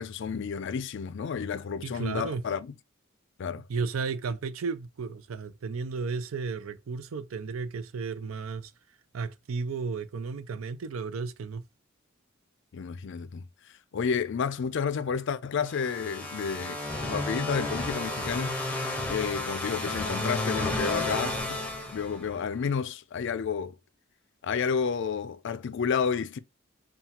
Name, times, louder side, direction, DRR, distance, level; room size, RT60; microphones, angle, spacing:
voice 1, 0.0-2.7 3.4-3.6 12.7-13.5 13.9-18.5 19.1-21.6 21.9-23.8 24.4-26.4, left 6 dB, 60° left, 0.4 m, -31 dB
voice 2, 1.8-2.4 3.7-8.7 9.1-11.7, right 4 dB, 85° right, 0.5 m, -33 dB
sound 1, 15.7-22.6, left 2 dB, 5° left, 0.9 m, -32 dB
5.6 x 2.3 x 2.8 m
head